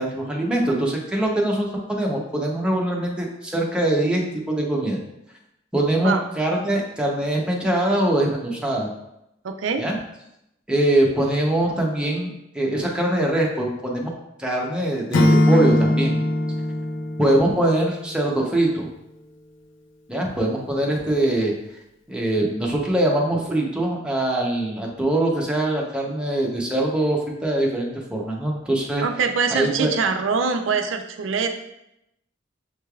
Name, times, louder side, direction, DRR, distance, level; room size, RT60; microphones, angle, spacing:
voice 1, 0.0-5.0 5.7-8.9 9.8-10.0 10.7-14.1 14.4-16.2 17.2-18.9 20.1-21.5 22.1-29.0 29.5-29.9, right 1 dB, 5° right, -2 dB, 0.7 m, -23 dB
voice 2, 9.4-9.8 29.0-31.6, right 5 dB, 85° right, 6 dB, 0.5 m, -23 dB
Acoustic guitar / Strum, 15.1-18.2, left 1 dB, 75° left, 0.4 m, -21 dB
6.5 x 3.2 x 2.3 m, 0.84 s
head